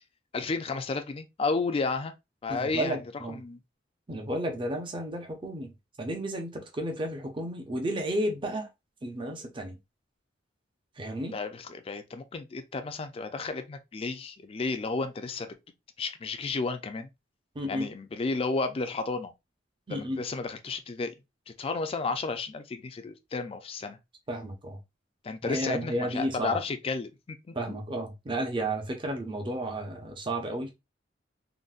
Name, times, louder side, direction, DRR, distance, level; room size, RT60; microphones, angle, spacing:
voice 1, 0.3-2.1 2.4-3.0 3.4-3.6 11.3-15.6 16.0-17.1 17.7-19.3 19.9-21.1 21.6-24.0 25.2-27.6, left 4 dB, 30° left, 0.4 m, -32 dB
voice 2, 2.5-3.4 4.1-5.7 6.0-8.7 9.0-9.8 11.0-11.4 17.5-17.8 19.9-20.2 24.3-24.8 25.4-26.6 27.5-30.8, right 1 dB, 25° right, 0.5 m, -32 dB
3.8 x 2.1 x 2.3 m
head